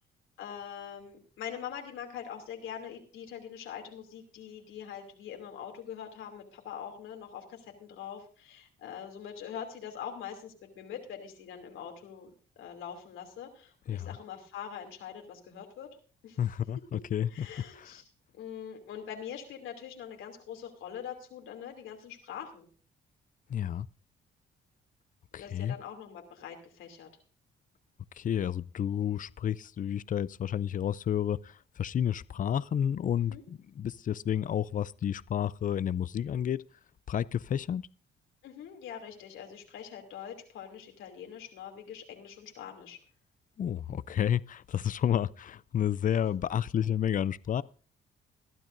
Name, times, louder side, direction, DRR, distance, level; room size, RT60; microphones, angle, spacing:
voice 1, 0.4-12.3 12.6-15.9 16.2-16.4 17.3-18.0 18.4-22.7 25.3-27.1 33.3-33.4 38.4-43.0, left 8 dB, 85° left, 2.8 m, -43 dB
voice 2, 16.4-17.5 17.7-17.9 23.5-23.9 25.3-25.7 28.2-36.6 37.1-37.8 43.6-47.6, left 9 dB, 40° left, 0.5 m, -31 dB
21.5 x 12.0 x 2.6 m
cardioid pair, 90°, 20 cm